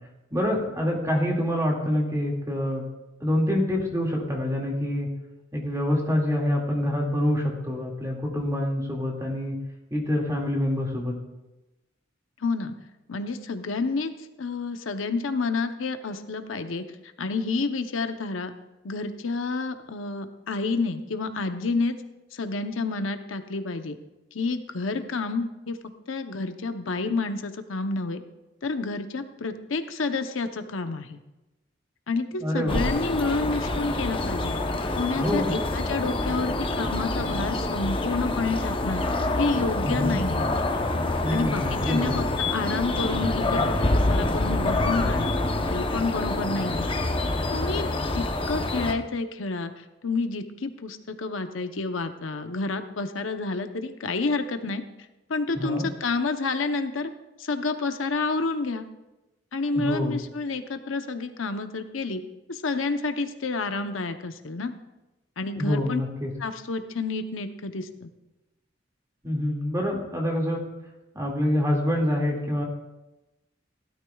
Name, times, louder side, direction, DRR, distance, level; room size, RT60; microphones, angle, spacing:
voice 1, 0.3-2.9 3.2-5.1 5.5-9.6 9.9-11.2 32.4-32.8 35.1-35.5 39.8-40.2 41.2-42.3 55.5-55.9 59.7-60.2 65.6-66.3 69.2-70.6 71.1-72.6, left 1 dB, 15° right, 0 dB, 2.1 m, -26 dB
voice 2, 12.4-12.7 13.1-14.1 14.4-16.8 17.2-18.5 18.8-21.9 22.3-24.0 24.3-25.8 26.1-28.2 28.6-31.2 32.1-34.6 35.0-39.0 39.4-40.4 41.3-42.3 42.5-45.3 45.7-46.9 47.5-47.9 48.1-54.8 55.3-57.1 57.4-58.9 59.5-62.2 62.5-64.7 65.4-66.0 66.4-68.1, left 3 dB, 90° left, 8 dB, 0.8 m, -29 dB
sound 1, 32.7-48.9, left 2 dB, 25° left, 0.8 m, -26 dB
16.5 x 12.5 x 2.3 m, 1.0 s
head